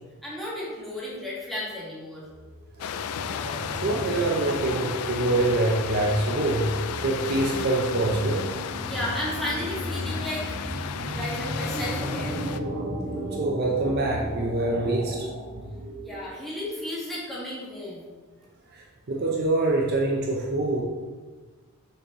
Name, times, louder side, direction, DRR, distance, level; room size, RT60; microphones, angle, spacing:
voice 1, 0.2-2.3 8.9-10.5 11.1-12.4 16.0-18.0, left 1 dB, ahead, -8 dB, 1.9 m, -33 dB
sound 1, 2.3-16.4, right 1 dB, 65° right, 1.6 m, -35 dB
sound 2, 2.8-12.6, left 7 dB, 80° left, 0.4 m, -34 dB
voice 2, 3.8-8.5 13.4-15.3 18.7-20.8, right 2 dB, 45° right, -1 dB, 0.7 m, -25 dB
6.6 x 6.1 x 3.1 m, 1.3 s
head